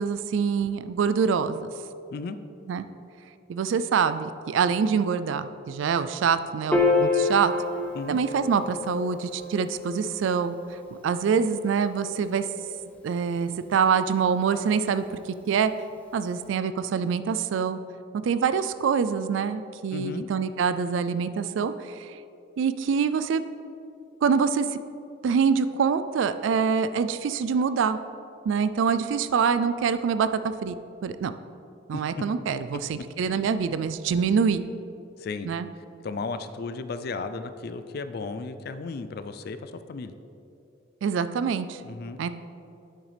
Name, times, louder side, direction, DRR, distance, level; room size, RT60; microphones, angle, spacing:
voice 1, 0.0-1.7 2.7-2.8 3.5-7.5 8.1-10.5 11.0-12.5 13.0-15.0 15.5-15.7 16.1-17.8 18.1-22.2 22.6-23.4 24.2-24.7 25.2-28.0 28.5-30.7 31.0-31.3 31.9-34.6 35.5-35.7 41.0-41.8 42.2-42.3, right 6 dB, 70° right, 12 dB, 0.3 m, -25 dB
Piano, 6.7-13.3, left 3 dB, 5° left, 0.6 m, -29 dB
voice 2, 19.9-20.3 31.9-32.0 35.2-35.5 36.0-40.1 41.8-42.2, left 4 dB, 50° left, 10 dB, 0.4 m, -34 dB
9.0 x 6.4 x 3.3 m, 2.7 s
head